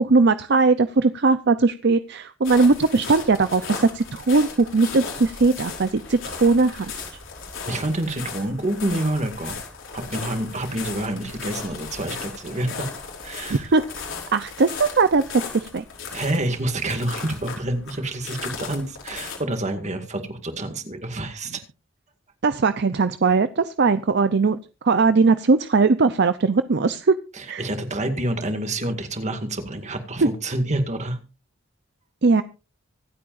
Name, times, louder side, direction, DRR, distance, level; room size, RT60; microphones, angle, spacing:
voice 1, 0.0-7.0 13.5-15.8 22.4-24.6 24.8-27.1 27.5-27.7 30.2-30.3 32.2-32.4, right 4 dB, 60° right, 12 dB, 0.6 m, -19 dB
sound 1, 2.4-19.4, left 5 dB, 75° left, 5.4 m, -36 dB
voice 2, 7.6-9.6 9.9-12.9 13.2-13.7 16.1-21.6 27.3-31.2, right 1 dB, 35° right, 7 dB, 2.1 m, -28 dB
25.0 x 8.6 x 2.6 m, 0.31 s
head